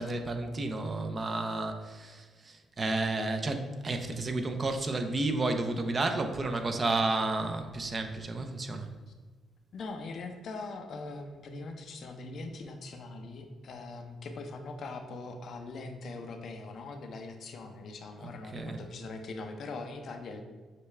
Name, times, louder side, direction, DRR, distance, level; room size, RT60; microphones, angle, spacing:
voice 1, 0.0-8.9 18.2-18.9, right 2 dB, 35° right, 6 dB, 0.5 m, -32 dB
voice 2, 9.7-20.4, left 3 dB, 60° left, 5 dB, 0.5 m, -41 dB
6.5 x 2.3 x 3.3 m, 1.4 s
cardioid pair, 90°, 0 cm